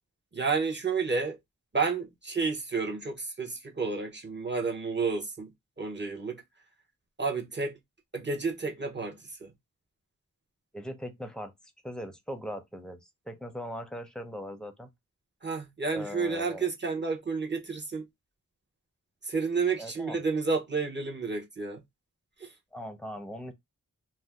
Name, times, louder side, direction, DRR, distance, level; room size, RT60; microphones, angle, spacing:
voice 1, 0.3-1.4 1.7-5.5 5.8-6.4 7.2-7.8 8.1-9.5 15.4-18.1 19.2-21.8 22.4-22.5, right 4 dB, 30° right, 0.9 m, -31 dB
voice 2, 10.7-11.5 11.8-14.9 15.9-16.7 19.8-20.2 22.7-23.5, equal, ahead, 0.6 m, -40 dB
2.7 x 2.1 x 3.3 m
wide cardioid pair, 70°, 34 cm